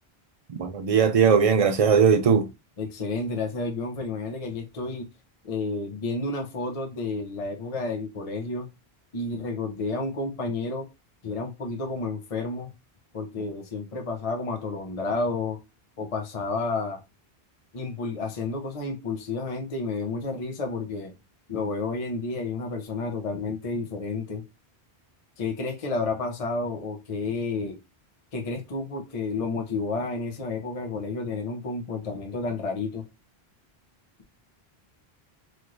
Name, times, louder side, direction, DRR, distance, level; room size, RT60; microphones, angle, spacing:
voice 1, 0.5-2.5, right 6 dB, 50° right, 0.5 m, -19 dB
voice 2, 2.8-5.1 5.4-8.7 9.1-10.9 11.2-12.7 13.1-15.6 16.0-17.0 17.7-21.1 21.5-24.4 25.4-27.8 28.3-33.0, left 3 dB, 40° left, 0.7 m, -31 dB
3.2 x 2.9 x 2.5 m
omnidirectional pair, 1.1 m